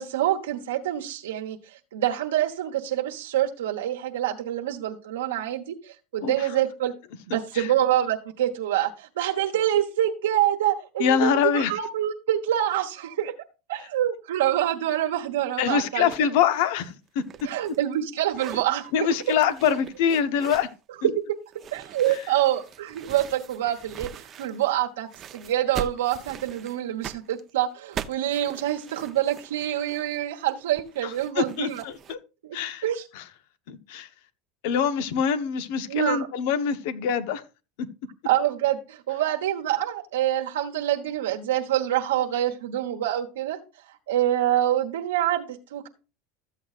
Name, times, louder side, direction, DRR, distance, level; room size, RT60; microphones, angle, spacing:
voice 1, 0.0-6.9 7.3-13.3 13.7-16.3 17.4-19.1 19.6-19.8 21.0-21.1 21.7-31.8 32.4-32.6 32.8-33.1 35.9-36.3 38.2-43.6 43.9-45.9, right 12 dB, 90° right, 1.2 m, -26 dB
voice 2, 11.0-11.7 15.6-17.2 18.9-20.7 31.4-32.2 32.5-32.8 33.1-33.2 33.7-34.1 34.6-37.4, left 8 dB, 70° left, 1.1 m, -24 dB
sound 1, 16.1-16.3 16.6-18.0 18.3-18.7 19.1-20.7 21.5-24.8 25.1-32.1, right 8 dB, 40° right, 0.7 m, -41 dB
14.0 x 7.8 x 2.5 m
supercardioid pair, 105°, 0 cm